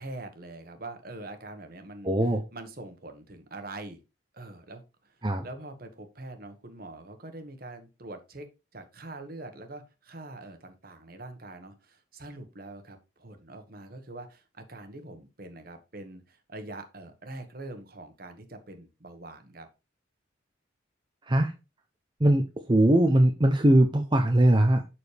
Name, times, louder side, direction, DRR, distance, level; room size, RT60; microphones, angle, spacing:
voice 1, 0.0-2.1 2.5-4.0 4.3-19.7, right 2 dB, 50° right, 1.4 m, -44 dB
voice 2, 2.0-2.4 5.2-5.4 21.3-21.5 22.2-24.8, right 1 dB, 25° right, 0.7 m, -21 dB
7.1 x 6.3 x 3.4 m
head